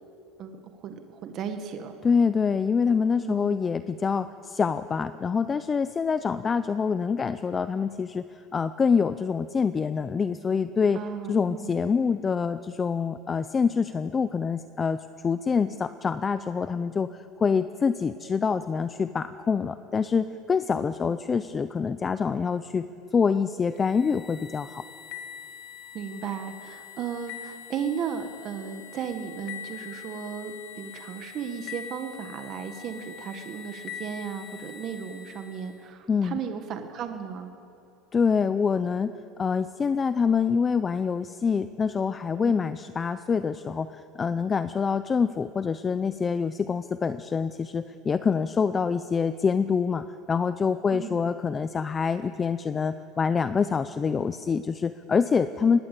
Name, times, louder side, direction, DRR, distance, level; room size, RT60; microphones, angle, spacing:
voice 1, 0.4-2.0 3.2-3.6 10.9-11.7 25.9-37.5 42.4-42.5 50.9-51.2, right 7 dB, 35° right, 6 dB, 1.5 m, -35 dB
voice 2, 2.0-11.0 11.3-22.9 23.1-24.8 36.1-36.4 38.1-39.1 39.4-55.8, left 5 dB, 20° left, 12 dB, 0.5 m, -26 dB
sound 1, 23.7-35.8, left 8 dB, 50° left, 1.8 m, -43 dB
21.0 x 19.5 x 8.3 m, 2.7 s
supercardioid pair, 155°, 0 cm